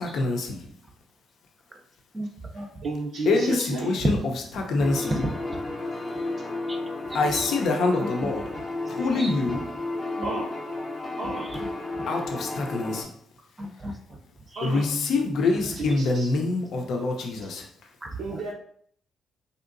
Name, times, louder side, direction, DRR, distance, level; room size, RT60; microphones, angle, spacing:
voice 1, 0.1-0.7 3.3-4.2 4.6-5.2 7.1-8.4 8.9-9.6 12.1-13.1 14.6-17.6, left 3 dB, 70° left, 2 dB, 0.6 m, -25 dB
voice 2, 2.1-2.7 4.0-4.2 4.8-5.4 6.7-6.8 7.1-7.5 8.0-8.6 9.1-9.3 10.2-10.3 10.8-12.0 13.6-14.2 14.5-14.8 15.4-15.5 18.0-18.4, right 1 dB, 25° right, 4 dB, 0.6 m, -34 dB
voice 3, 2.8-3.9 7.2-7.4 10.2-10.5 11.2-11.6 14.6-14.9 15.8-16.3 18.2-18.5, right 3 dB, 80° right, -4 dB, 0.6 m, -32 dB
sound 1, 4.8-13.0, left 2 dB, 30° left, 0.7 m, -33 dB
3.6 x 2.8 x 2.5 m, 0.62 s
cardioid pair, 90°, 0 cm